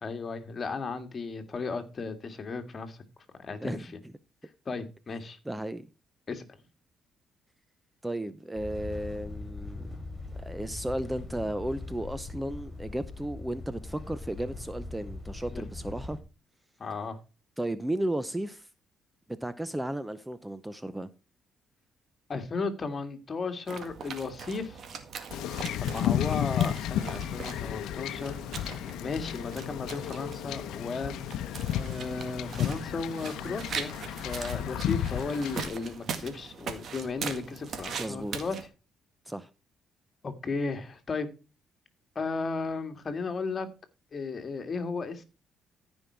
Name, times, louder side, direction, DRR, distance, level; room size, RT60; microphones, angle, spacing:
voice 1, 0.0-3.0 3.4-3.9 4.7-5.4 6.3-6.4 15.5-15.6 16.8-17.2 22.3-24.8 25.5-28.4 28.7-31.1 31.7-33.9 34.2-38.6 40.2-41.3 42.2-43.7 44.1-45.2, left 4 dB, 40° left, 1.9 m, -35 dB
voice 2, 5.5-5.9 8.0-10.0 10.3-16.2 17.6-18.7 19.4-21.1 38.0-38.4 39.3-39.5, right 1 dB, 10° right, 0.7 m, -34 dB
sound 1, 8.6-16.2, left 3 dB, 20° left, 5.6 m, -41 dB
sound 2, 23.7-38.7, right 6 dB, 60° right, 1.9 m, -41 dB
Wind / Ocean / Boat Water vehicle, 25.3-35.7, left 10 dB, 85° left, 0.7 m, -33 dB
14.0 x 5.4 x 4.5 m
cardioid pair, 90°, 0 cm